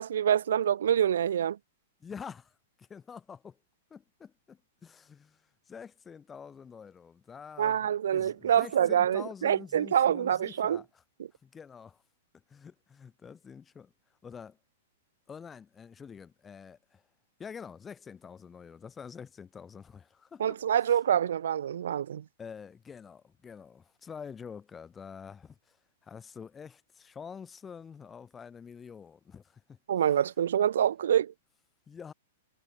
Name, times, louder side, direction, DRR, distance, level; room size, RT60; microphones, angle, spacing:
voice 1, 0.0-1.6 7.6-10.8 20.4-22.2 29.9-31.3, right 9 dB, 80° right, 2.1 m, -26 dB
voice 2, 2.0-3.6 3.9-7.8 8.1-11.0 11.4-12.0 12.5-13.9 14.2-14.6 15.3-17.0 17.4-21.0 22.4-25.8 26.0-29.8 31.9-32.1, left 6 dB, 15° left, 5.1 m, -47 dB
hypercardioid pair, 140°, 0 cm